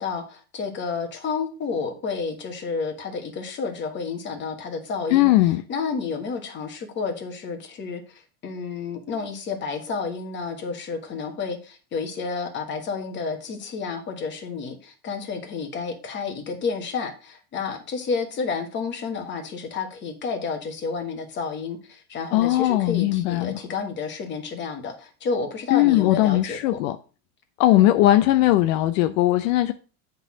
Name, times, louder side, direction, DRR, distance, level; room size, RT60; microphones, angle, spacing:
voice 1, 0.0-5.3 5.7-26.8 27.8-27.9, left 5 dB, 25° left, 1.5 m, -30 dB
voice 2, 5.1-5.6 22.3-23.6 25.7-27.0 27.6-29.7, left 15 dB, 65° left, 0.7 m, -19 dB
8.1 x 4.0 x 6.2 m
supercardioid pair, 155°, 41 cm